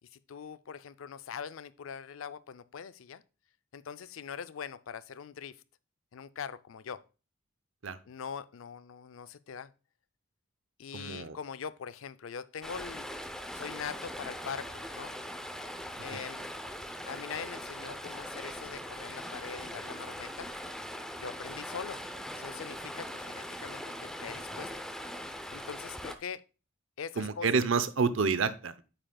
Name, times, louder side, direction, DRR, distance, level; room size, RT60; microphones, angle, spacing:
voice 1, 0.3-3.2 3.7-5.6 6.1-7.0 8.1-9.7 10.8-13.1 13.5-15.1 16.0-16.5 17.1-20.5 21.2-22.0 22.4-24.7 25.5-26.4 27.0-27.5, left 7 dB, 85° left, 0.4 m, -42 dB
voice 2, 10.9-11.4 27.2-28.8, right 5 dB, 70° right, 0.7 m, -28 dB
Stream, 12.6-26.2, equal, 5° left, 0.6 m, -41 dB
8.8 x 7.6 x 2.3 m
head